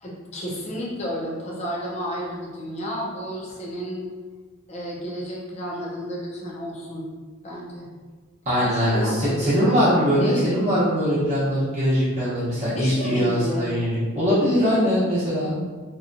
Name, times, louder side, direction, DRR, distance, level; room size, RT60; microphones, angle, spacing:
voice 1, 0.0-4.1 4.7-7.1 7.4-7.9 8.6-10.6 12.8-13.7, equal, 30° left, -3 dB, 0.4 m, -31 dB
voice 2, 8.5-15.6, equal, 30° right, -11 dB, 0.7 m, -21 dB
2.7 x 2.2 x 2.5 m, 1.4 s
head